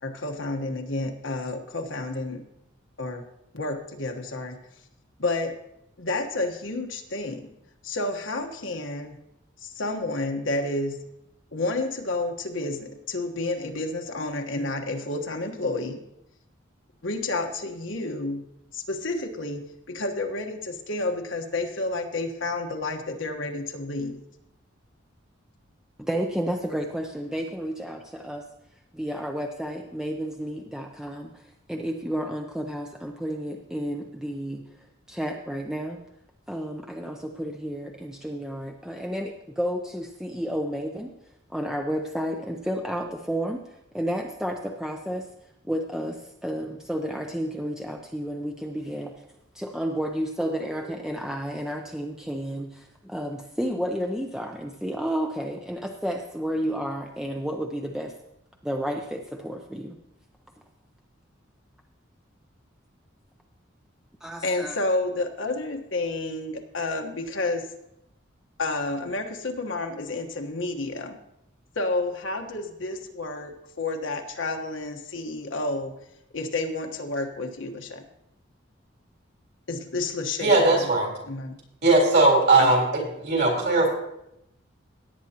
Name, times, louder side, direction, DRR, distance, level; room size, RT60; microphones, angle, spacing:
voice 1, 0.0-2.4 3.0-3.2 3.5-4.6 5.2-5.5 6.0-7.5 7.8-9.2 9.6-11.0 11.5-16.0 17.0-18.4 18.7-24.2 64.4-67.6 68.6-71.2 71.7-76.0 76.3-78.0 79.7-80.9 81.3-81.6 82.6-82.7, left 2 dB, 75° left, 4 dB, 1.3 m, -30 dB
voice 2, 26.0-28.4 28.9-34.6 35.1-36.0 36.5-41.1 41.5-43.6 43.9-45.3 45.6-49.1 49.5-58.1 58.6-60.0 64.2-64.8, equal, 5° right, 2 dB, 0.5 m, -31 dB
voice 3, 80.4-81.1 81.8-82.8 83.2-83.9, right 2 dB, 55° right, 0 dB, 3.8 m, -19 dB
17.5 x 8.9 x 2.9 m, 0.83 s
head